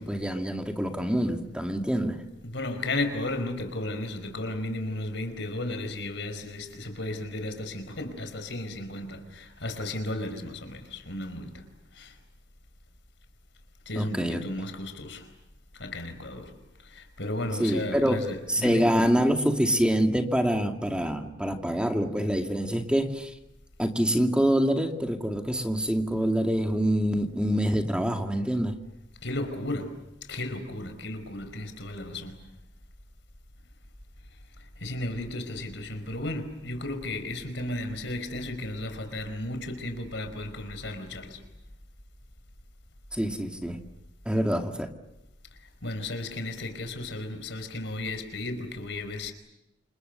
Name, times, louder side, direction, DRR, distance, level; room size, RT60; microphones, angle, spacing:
voice 1, 0.0-2.2 14.0-14.4 17.6-18.2 18.5-23.3 23.8-28.7 43.1-43.8 44.3-44.9, equal, 5° right, 2.3 m, -26 dB
voice 2, 2.4-11.7 11.9-12.2 13.8-15.3 15.7-18.9 29.2-30.0 30.3-32.4 34.3-41.4 45.5-49.3, left 1 dB, 75° left, 5.0 m, -34 dB
28.5 x 28.0 x 6.8 m
head